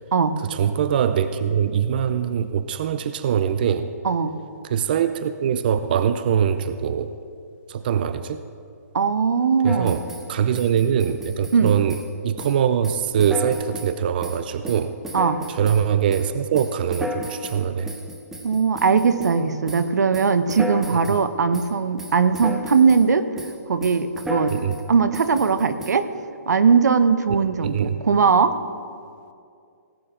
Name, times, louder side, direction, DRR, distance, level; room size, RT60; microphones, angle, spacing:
voice 1, 0.5-3.9 4.6-7.1 7.7-8.4 9.6-12.0 12.2-15.0 15.5-17.9 24.5-24.7 27.6-28.0, right 8 dB, 35° right, 11 dB, 0.4 m, -23 dB
voice 2, 8.9-10.0 11.5-11.8 15.1-15.4 18.4-23.3 23.7-24.6 24.9-26.1 26.5-28.5, right 5 dB, 85° right, 11 dB, 0.9 m, -19 dB
sound 1, 9.6-10.3 10.5-12.1 12.4-12.6 12.8-13.9 14.2-15.8 16.1-19.4 19.7-19.9 20.1-21.2 21.5-21.7 22.0-23.1 23.4-23.6 23.8-24.8 25.1-25.9, equal, 5° right, 0.7 m, -33 dB
18.0 x 9.1 x 3.7 m, 2.3 s
hypercardioid pair, 165°, 9 cm